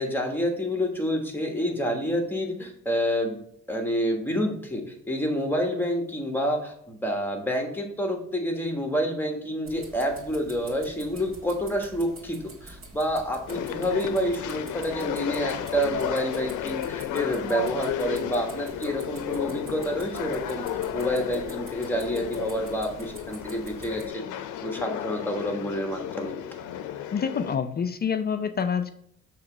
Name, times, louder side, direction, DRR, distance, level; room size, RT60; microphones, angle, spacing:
voice 1, 0.0-3.4 3.7-20.7 20.9-26.4, equal, 5° left, 3 dB, 1.3 m, -28 dB
sound 1, 9.6-24.1, right 2 dB, 45° right, 1.6 m, -47 dB
sound 2, 13.5-27.6, left 10 dB, 80° left, 0.5 m, -33 dB
voice 2, 27.1-28.9, left 6 dB, 35° left, 9 dB, 0.4 m, -27 dB
6.5 x 3.0 x 4.8 m, 0.70 s
cardioid pair, 90°, 30 cm